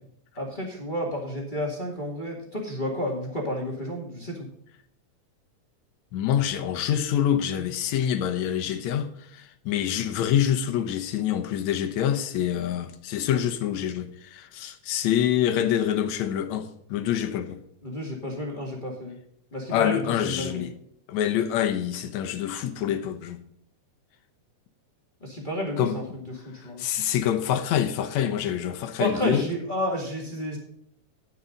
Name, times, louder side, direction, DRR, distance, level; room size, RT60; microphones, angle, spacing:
voice 1, 0.4-4.5 17.8-19.2 19.5-20.7 25.2-26.8 29.0-30.6, equal, 20° left, 1.8 m, -31 dB
voice 2, 6.1-17.6 19.7-20.7 21.1-23.4 25.8-26.0 26.8-29.5, left 10 dB, 70° left, 2.1 m, -26 dB
10.5 x 9.3 x 3.9 m
omnidirectional pair, 3.5 m